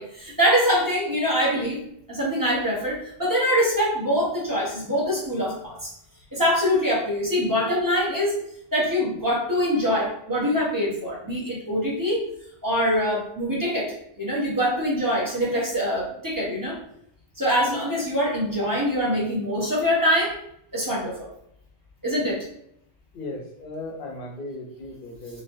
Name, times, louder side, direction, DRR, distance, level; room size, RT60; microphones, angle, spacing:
voice 1, 0.0-1.8 2.1-5.9 6.3-8.4 8.7-12.2 12.6-16.8 17.4-20.4 20.7-21.2 22.0-22.4, equal, 20° right, -6 dB, 1.0 m, -24 dB
voice 2, 23.1-25.4, left 2 dB, 55° left, 1 dB, 0.8 m, -36 dB
3.1 x 2.7 x 2.6 m, 0.72 s
omnidirectional pair, 1.2 m